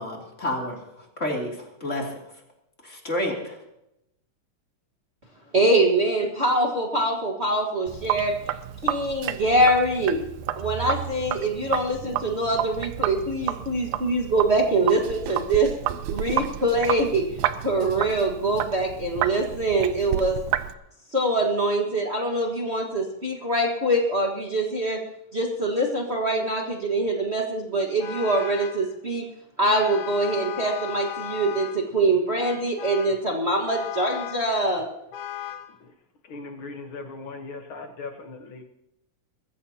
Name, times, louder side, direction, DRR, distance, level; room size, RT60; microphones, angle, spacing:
voice 1, 0.0-2.2 2.8-3.6, left 1 dB, 25° left, -1 dB, 2.8 m, -30 dB
voice 2, 5.5-8.3 8.8-10.2 10.5-15.7 16.1-17.2 17.6-20.4 21.1-25.0 25.3-29.2 29.6-34.8, right 1 dB, 35° right, 0 dB, 1.0 m, -24 dB
Sink (filling or washing), 7.9-20.7, right 12 dB, 80° right, 2.0 m, -31 dB
Vehicle horn car horn honking, 28.0-28.9 29.7-31.9 32.4-33.2 33.7-34.5 35.1-35.7, left 11 dB, 70° left, 2.2 m, -36 dB
voice 3, 36.2-38.7, left 3 dB, 55° left, 5 dB, 1.5 m, -39 dB
22.5 x 14.5 x 2.9 m, 0.84 s
omnidirectional pair, 3.7 m